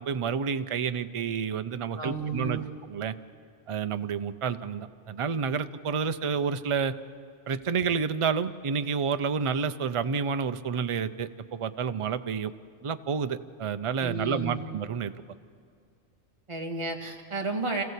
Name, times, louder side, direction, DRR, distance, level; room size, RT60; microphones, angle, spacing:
voice 1, 0.0-2.6 2.9-3.1 3.7-6.9 7.5-12.5 12.8-15.2, right 6 dB, 45° right, 10 dB, 0.4 m, -29 dB
voice 2, 1.9-2.7 14.0-14.6 16.5-17.8, right 3 dB, 20° right, 1 dB, 2.0 m, -32 dB
26.5 x 15.5 x 8.3 m, 2.3 s
omnidirectional pair, 1.4 m